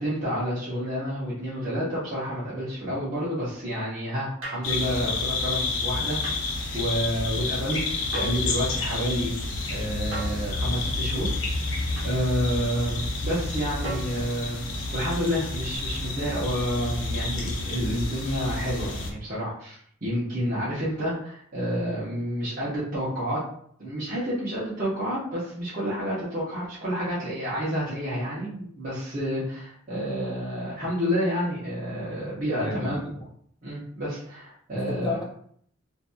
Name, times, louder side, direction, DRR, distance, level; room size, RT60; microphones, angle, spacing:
voice 1, 0.0-9.3 9.7-11.3 12.0-14.7 14.9-23.4 23.8-33.0 33.6-35.2, equal, 40° right, -10 dB, 0.9 m, -29 dB
sound 1, 4.4-4.7 6.2-6.4 8.1-8.5 10.1-10.5 12.0-12.2 13.8-14.2 15.7-15.8, right 2 dB, 65° right, 1.0 m, -36 dB
sound 2, 4.6-19.1, left 2 dB, 65° left, 0.7 m, -30 dB
voice 2, 32.6-33.3 34.7-35.2, left 2 dB, 20° left, -1 dB, 0.4 m, -32 dB
2.9 x 2.6 x 2.2 m, 0.62 s
head